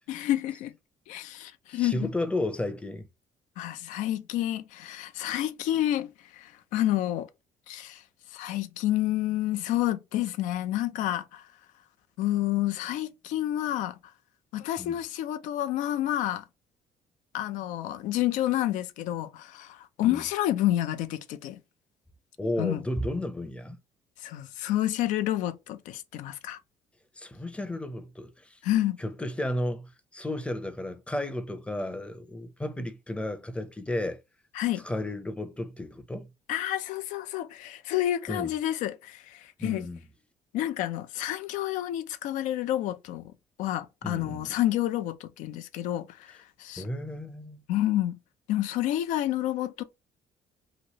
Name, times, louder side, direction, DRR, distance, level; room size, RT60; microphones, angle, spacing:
voice 1, 0.1-0.7 1.1-2.1 3.6-7.3 7.7-8.0 8.3-11.5 12.2-14.0 14.5-16.4 17.3-21.6 22.6-22.8 24.2-26.6 28.6-29.0 34.5-34.8 36.5-39.9 40.5-43.3 43.6-46.9 47.7-48.2 48.5-49.8, left 13 dB, 80° left, 0.5 m, -29 dB
voice 2, 1.7-3.1 14.8-15.0 20.0-20.3 22.4-23.8 27.2-28.6 29.0-34.2 34.8-36.3 38.3-38.5 39.6-40.0 44.0-44.5 46.8-47.6, left 1 dB, 10° left, 0.6 m, -33 dB
3.0 x 2.6 x 2.8 m
cardioid pair, 90°, 13 cm